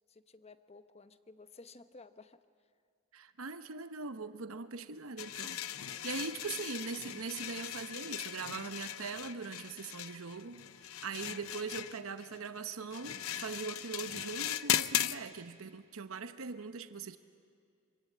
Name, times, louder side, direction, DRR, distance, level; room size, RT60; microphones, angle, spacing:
voice 1, 0.1-2.4 5.9-6.1, left 3 dB, 30° left, 11 dB, 0.9 m, -55 dB
voice 2, 3.1-5.6 6.0-17.2, right 4 dB, 80° right, 10 dB, 0.9 m, -41 dB
sound 1, 5.2-15.2, left 11 dB, 85° left, 0.7 m, -38 dB
25.0 x 25.0 x 8.5 m, 2.3 s
head